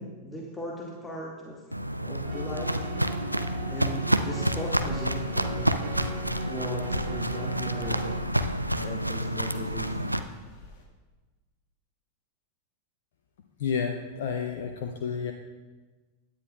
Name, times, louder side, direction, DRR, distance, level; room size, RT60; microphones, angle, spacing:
voice 1, 0.0-1.6 2.0-2.8 3.7-5.8 6.5-8.5 8.8-10.2, equal, 10° left, -1 dB, 1.3 m, -38 dB
Walk footsteps, 1.7-10.2, equal, 90° right, 0.4 m, -29 dB
sound 1, 2.2-8.2, right 4 dB, 30° right, 2.0 m, -41 dB
sound 2, 3.4-10.8, left 3 dB, 40° left, 1.8 m, -46 dB
voice 2, 13.6-15.3, left 6 dB, 55° left, 4 dB, 0.7 m, -30 dB
16.5 x 10.0 x 2.4 m, 1.3 s
figure-of-eight pair, 90°, 0 cm